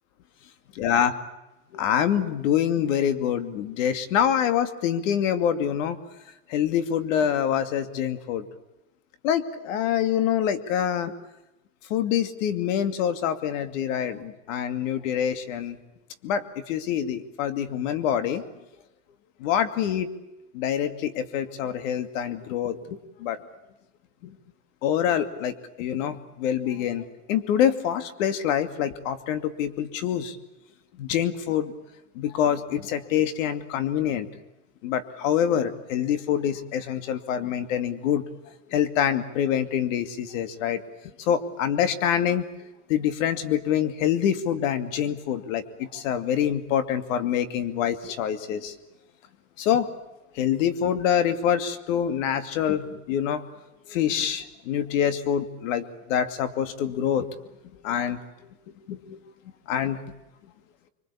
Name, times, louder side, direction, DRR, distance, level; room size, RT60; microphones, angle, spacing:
voice 1, 0.8-1.1 1.7-6.0 6.5-8.5 9.2-11.1 11.9-15.8 16.2-18.4 19.4-20.1 20.5-23.4 24.2-24.3 24.8-30.4 31.0-31.7 32.1-34.3 34.8-38.2 38.7-40.8 41.2-42.4 42.9-48.7 49.6-49.9 50.4-53.4 53.9-57.3 57.8-58.2 58.9-59.2 59.7-60.0, left 9 dB, 60° left, 10 dB, 2.6 m, -25 dB
26.0 x 23.5 x 8.6 m, 0.96 s
supercardioid pair, 145°, 43 cm